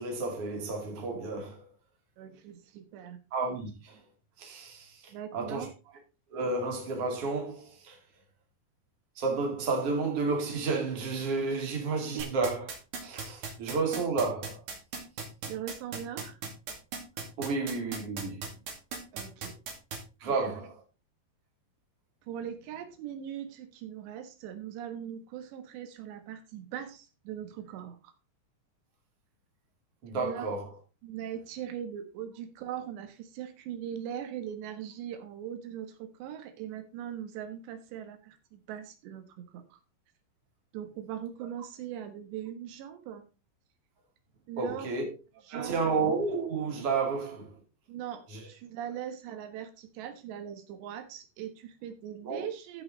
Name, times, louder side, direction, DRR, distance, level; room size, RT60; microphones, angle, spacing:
voice 1, 0.0-1.7 3.3-4.0 4.4-5.7 6.3-8.0 9.2-12.6 13.0-14.6 17.4-18.5 20.2-20.8 30.0-30.7 44.6-45.1 45.5-47.5 48.3-48.4 52.2-52.4, right 4 dB, 40° right, 3.2 m, -31 dB
voice 2, 2.2-3.2 5.1-5.7 12.1-12.3 15.5-16.4 19.1-19.6 20.3-20.6 22.2-28.1 30.2-30.5 31.0-39.8 40.7-43.2 44.5-44.9 45.5-45.8 47.9-52.8, right 9 dB, 85° right, 3.5 m, -40 dB
sound 1, 12.2-20.0, right 5 dB, 55° right, 3.6 m, -37 dB
14.5 x 5.3 x 3.9 m
omnidirectional pair, 4.8 m